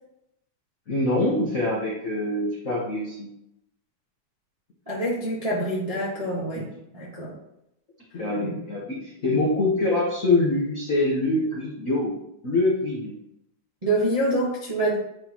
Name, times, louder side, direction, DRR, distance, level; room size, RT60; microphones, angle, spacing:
voice 1, 0.9-3.3 5.5-5.6 6.3-6.7 8.1-12.2 12.4-13.1, left 2 dB, 80° left, -5 dB, 0.7 m, -25 dB
voice 2, 4.9-6.7 6.9-7.3 13.8-14.9, right 1 dB, 30° right, -6 dB, 0.6 m, -26 dB
9.8 x 4.1 x 3.0 m, 0.82 s
omnidirectional pair, 3.3 m